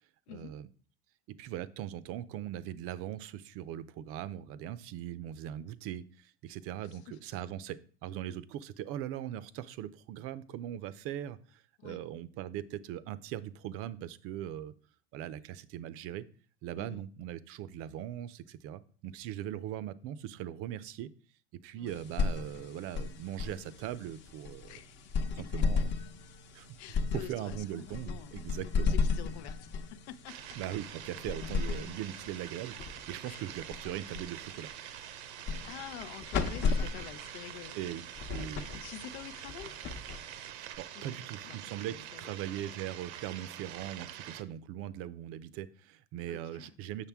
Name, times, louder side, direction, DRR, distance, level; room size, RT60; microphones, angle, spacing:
voice 1, 0.3-0.7 1.3-14.7 15.1-16.2 16.6-21.1 21.6-24.8 25.4-25.9 26.5-26.8 27.1-29.0 30.6-34.7 37.7-38.0 38.3-38.7 40.4-47.1, right 11 dB, 45° right, 16 dB, 0.5 m, -40 dB
voice 2, 6.8-7.2 11.8-12.0 16.8-17.1 21.7-22.0 24.7-25.4 25.8-25.9 26.8-30.6 33.2-33.4 35.6-37.8 38.5-39.7 40.9-42.6 46.3-46.8, left 11 dB, 85° left, 14 dB, 0.7 m, -48 dB
sound 1, 21.9-40.7, left 5 dB, 35° left, 0.8 m, -36 dB
sound 2, 30.3-44.4, right 11 dB, 80° right, 0.8 m, -46 dB
7.3 x 6.5 x 3.5 m, 0.42 s
supercardioid pair, 145°, 32 cm